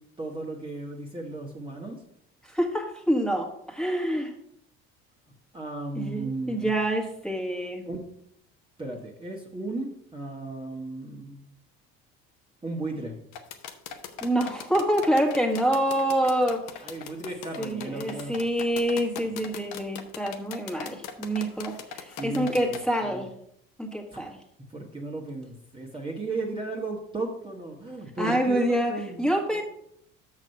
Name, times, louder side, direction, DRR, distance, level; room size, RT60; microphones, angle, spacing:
voice 1, 0.2-2.0 5.5-6.7 7.8-8.0 8.8-11.4 12.6-13.2 16.8-18.4 19.2-19.3 22.2-23.2 24.1-24.2 24.7-29.2 29.5-29.6, right 2 dB, 15° right, -1 dB, 1.4 m, -35 dB
voice 2, 2.4-4.3 5.9-7.8 14.2-16.9 17.6-23.3 23.8-24.4 28.2-28.9 29.2-29.6, right 1 dB, ahead, 0 dB, 1.7 m, -26 dB
sound 1, 13.3-22.8, left 8 dB, 75° left, 1.0 m, -40 dB
6.5 x 6.2 x 5.4 m, 0.72 s
supercardioid pair, 85°, 32 cm